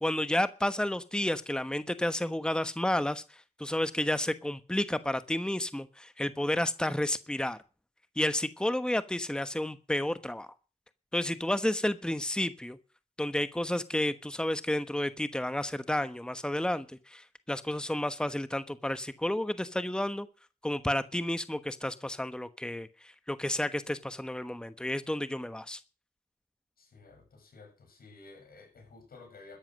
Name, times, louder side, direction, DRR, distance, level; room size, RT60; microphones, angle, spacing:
voice 1, 0.0-3.2 3.6-7.6 8.2-10.5 11.1-12.8 13.2-20.3 20.6-22.9 23.3-25.8, left 1 dB, 5° left, 12 dB, 1.1 m, -31 dB
voice 2, 26.8-29.6, left 3 dB, 85° left, 4 dB, 7.3 m, -53 dB
13.5 x 10.5 x 6.4 m, 0.35 s
cardioid pair, 50°, 15 cm